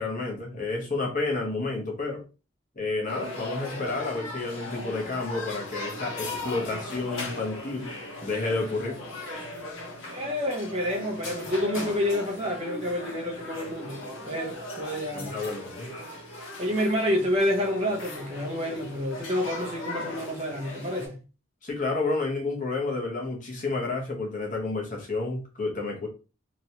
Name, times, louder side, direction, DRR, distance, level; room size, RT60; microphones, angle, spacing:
voice 1, 0.0-2.2 2.8-7.9 8.2-9.0 15.1-15.9 21.6-26.1, left 3 dB, 40° left, 1.0 m, -30 dB
sound 1, 3.1-21.1, left 1 dB, 90° left, 1.2 m, -38 dB
voice 2, 10.1-15.5 16.6-21.2, left 1 dB, 30° right, 0.8 m, -29 dB
3.0 x 3.0 x 2.8 m
head